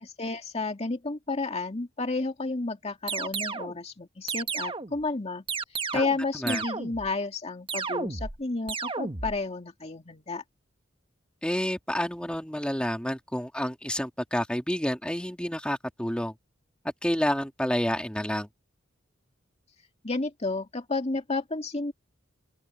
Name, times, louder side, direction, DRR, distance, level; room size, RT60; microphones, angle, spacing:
voice 1, 0.0-5.4 5.9-10.4 20.0-21.9, left 3 dB, 35° left, 2.2 m, -31 dB
sound 1, 3.1-3.8 4.3-5.0 5.5-6.2 6.5-7.1 7.7-8.4 8.7-9.4, right 4 dB, 25° right, 1.3 m, -32 dB
voice 2, 11.4-16.3 17.0-18.5, equal, 5° left, 2.4 m, -29 dB
open air
head